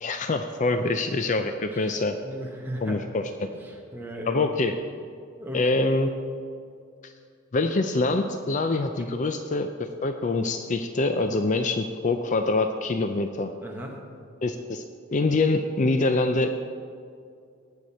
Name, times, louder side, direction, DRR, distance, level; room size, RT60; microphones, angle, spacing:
voice 1, 0.0-2.2 2.8-3.5 4.3-4.7 5.5-6.1 7.0-7.1 7.5-13.5 14.4-14.8 15.1-16.5, left 2 dB, 35° left, 7 dB, 0.4 m, -25 dB
voice 2, 2.2-3.0 3.4-4.4 5.4-5.6 13.6-14.0, right 1 dB, 10° right, 0 dB, 1.3 m, -37 dB
18.0 x 6.6 x 4.2 m, 2.3 s
head